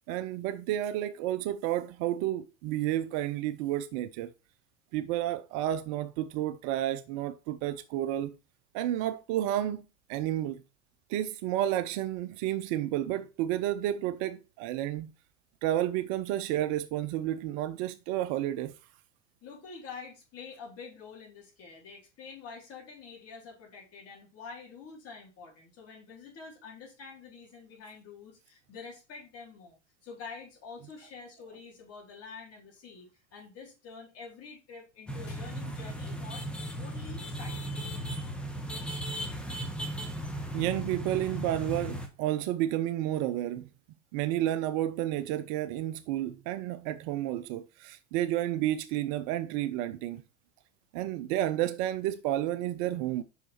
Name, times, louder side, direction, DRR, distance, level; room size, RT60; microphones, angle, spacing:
voice 1, 0.1-4.3 4.9-8.3 8.7-10.6 11.1-15.1 15.6-18.7 40.5-43.7 44.1-50.2 50.9-53.2, right 13 dB, 50° right, 0.6 m, -31 dB
voice 2, 19.4-36.4 36.8-38.0, left 5 dB, 40° left, 3.8 m, -47 dB
sound 1, 35.1-42.1, right 1 dB, 5° left, 1.3 m, -36 dB
5.6 x 4.8 x 4.4 m
hypercardioid pair, 85°, 36 cm